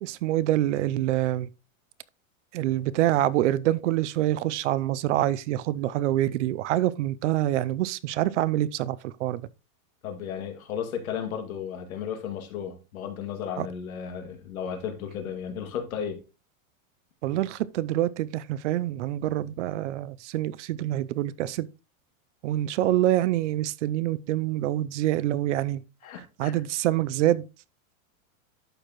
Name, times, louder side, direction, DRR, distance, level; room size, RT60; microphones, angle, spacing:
voice 1, 0.0-1.5 2.5-9.4 13.6-13.7 17.2-21.7 22.4-25.8 26.4-27.4, right 14 dB, 60° right, 0.5 m, -26 dB
voice 2, 10.0-16.2 26.0-26.5, left 8 dB, 80° left, 2.2 m, -34 dB
11.5 x 4.5 x 3.0 m
supercardioid pair, 165°, 41 cm